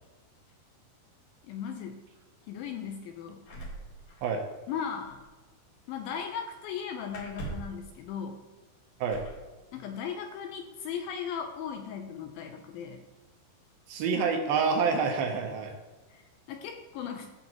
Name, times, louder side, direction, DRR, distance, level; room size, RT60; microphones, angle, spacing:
voice 1, 1.4-2.0 2.5-3.4 4.7-5.2 5.9-8.4 9.7-13.0 16.1-17.3, left 7 dB, 80° left, 5 dB, 2.2 m, -37 dB
sound 1, 3.5-4.8 5.0-5.3 7.1-7.8 9.1-9.5 10.6-10.7 11.1-11.6, right 2 dB, 55° left, 2.8 m, -41 dB
voice 2, 13.9-15.7, right 5 dB, 75° right, 3 dB, 2.5 m, -27 dB
15.5 x 5.7 x 3.0 m, 1.2 s
omnidirectional pair, 4.7 m